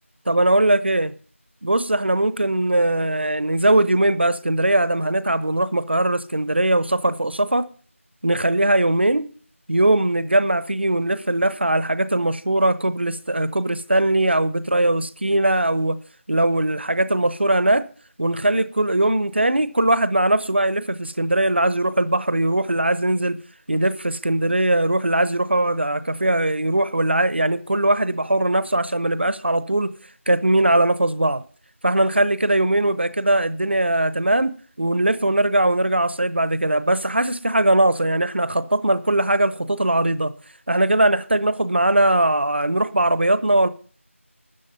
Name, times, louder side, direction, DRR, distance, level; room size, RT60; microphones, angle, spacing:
voice 1, 0.3-1.1 1.6-7.7 8.2-9.2 9.7-16.0 16.3-17.8 18.2-23.4 23.7-29.9 30.3-31.4 31.8-34.5 34.8-40.3 40.7-43.7, right 1 dB, 50° right, 0.9 m, -20 dB
13.0 x 8.1 x 5.7 m
figure-of-eight pair, 175°, 7 cm